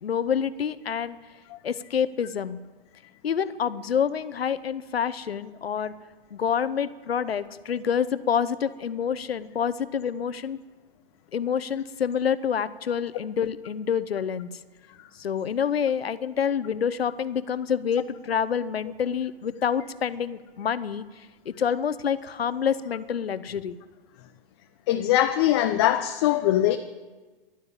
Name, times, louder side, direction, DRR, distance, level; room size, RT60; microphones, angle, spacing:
voice 1, 0.0-1.2 1.6-2.6 3.2-5.9 6.3-10.6 11.3-14.5 15.2-23.8, left 7 dB, 80° left, 0.9 m, -27 dB
voice 2, 24.9-26.8, left 13 dB, 30° left, 0.6 m, -21 dB
12.0 x 12.0 x 8.2 m
hypercardioid pair, 135°, 30 cm